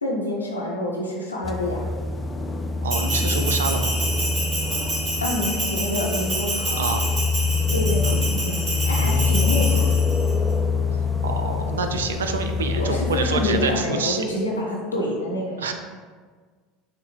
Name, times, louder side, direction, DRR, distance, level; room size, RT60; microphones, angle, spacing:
voice 1, 0.0-1.9 5.2-6.9 7.7-10.0 12.8-15.7, left 1 dB, 85° left, -3 dB, 0.8 m, -27 dB
sound 1, 1.4-13.9, left 4 dB, 15° left, 0.3 m, -25 dB
voice 2, 2.8-4.0 6.8-7.0 9.0-9.1 11.2-14.2 15.6-15.7, right 4 dB, 75° right, 6 dB, 0.3 m, -27 dB
Bell, 2.9-10.3, right 2 dB, 30° right, 1.2 m, -28 dB
5.5 x 2.0 x 3.3 m, 1.5 s
figure-of-eight pair, 75°, 0 cm